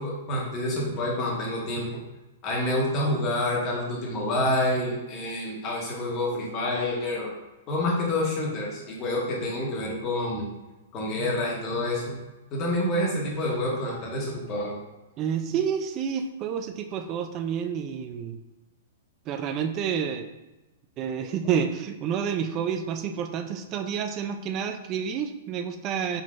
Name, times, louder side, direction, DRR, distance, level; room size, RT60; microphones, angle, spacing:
voice 1, 0.0-1.9 2.4-7.3 7.7-10.5 10.9-12.2 12.5-14.8, left 1 dB, 35° left, -2 dB, 1.3 m, -28 dB
voice 2, 15.2-18.4 19.3-20.3 21.0-26.2, right 7 dB, 35° right, 8 dB, 0.4 m, -29 dB
4.4 x 3.9 x 2.4 m, 1.1 s
hypercardioid pair, 125°, 0 cm